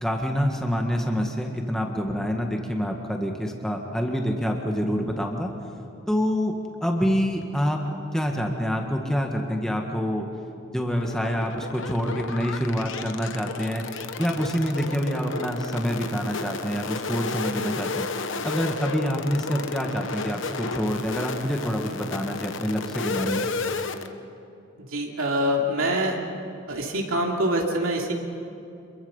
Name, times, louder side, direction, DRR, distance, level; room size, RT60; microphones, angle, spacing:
voice 1, 0.0-5.5 6.1-7.8 8.1-10.3 10.7-13.8 14.2-18.1 18.4-23.5, equal, 5° left, 2 dB, 1.6 m, -26 dB
sound 1, 10.9-24.1, left 4 dB, 65° left, 1.1 m, -32 dB
voice 2, 24.8-26.2 26.7-28.1, equal, 90° right, 0 dB, 2.9 m, -25 dB
27.0 x 22.5 x 5.6 m, 2.7 s
head